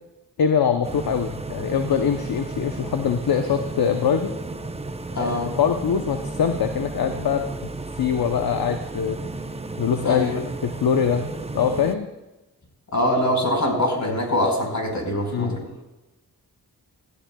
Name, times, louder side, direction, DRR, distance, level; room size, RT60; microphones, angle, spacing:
voice 1, 0.4-4.3 5.2-5.3 5.6-7.7 8.0-9.2 9.8-12.1 15.3-15.6, left 7 dB, 65° left, 6 dB, 0.8 m, -23 dB
sound 1, 0.8-12.0, right 2 dB, 15° right, 0.7 m, -33 dB
voice 2, 5.1-5.6 10.0-10.4 12.9-15.7, left 1 dB, 45° left, 1 dB, 4.7 m, -23 dB
17.5 x 13.0 x 2.3 m, 1.0 s
cardioid pair, 50°, 39 cm